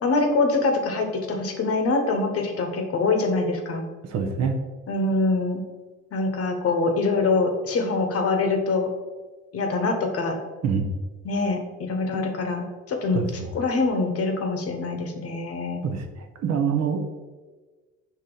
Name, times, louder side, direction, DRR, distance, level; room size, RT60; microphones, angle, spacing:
voice 1, 0.0-3.8 4.9-5.6 6.1-8.9 9.5-10.4 11.2-15.8, left 3 dB, 50° left, 4 dB, 0.9 m, -24 dB
voice 2, 4.1-4.5 10.6-10.9 13.1-13.2 15.8-16.0 16.4-17.0, right 6 dB, 55° right, 5 dB, 0.7 m, -24 dB
4.8 x 2.8 x 3.8 m, 1.3 s
supercardioid pair, 80°, 31 cm